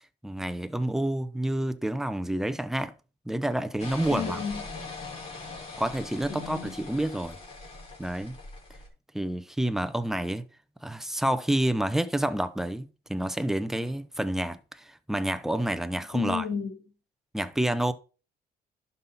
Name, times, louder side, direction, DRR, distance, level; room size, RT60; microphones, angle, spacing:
voice 1, 0.2-2.9 3.3-4.4 5.8-7.4 8.0-8.4 9.1-10.4 10.8-16.4 17.3-17.9, right 1 dB, ahead, 0.8 m, -29 dB
sound 1, 3.8-8.9, left 3 dB, 35° left, 5.0 m, -41 dB
voice 2, 4.1-4.6 6.3-6.7 16.1-16.8, left 7 dB, 65° left, 3.6 m, -32 dB
11.5 x 5.6 x 4.1 m
cardioid pair, 110°, 17 cm